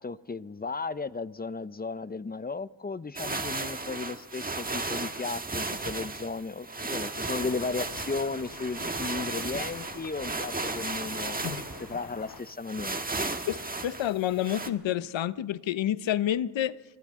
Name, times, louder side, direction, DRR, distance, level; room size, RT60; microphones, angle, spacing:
voice 1, 0.0-11.4 11.8-13.3, left 4 dB, 20° left, 0.6 m, -35 dB
sound 1, 3.2-14.7, right 3 dB, 20° right, 1.4 m, -35 dB
sound 2, 7.3-12.4, left 6 dB, 50° left, 1.2 m, -47 dB
voice 2, 13.5-16.8, left 11 dB, 75° left, 0.8 m, -29 dB
29.5 x 25.0 x 3.7 m
cardioid pair, 90°, 46 cm